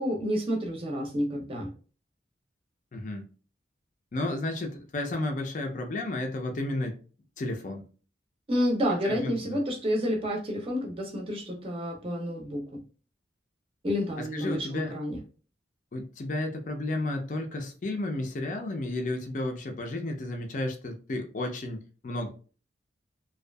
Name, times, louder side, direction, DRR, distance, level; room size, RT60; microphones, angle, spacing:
voice 1, 0.0-1.7 8.5-12.8 13.8-15.2, equal, 30° right, 0 dB, 0.5 m, -29 dB
voice 2, 2.9-3.3 4.1-6.9 7.4-7.9 9.0-9.6 14.2-14.9 15.9-22.3, left 2 dB, 45° left, 4 dB, 0.4 m, -32 dB
2.6 x 2.3 x 2.2 m, 0.38 s
head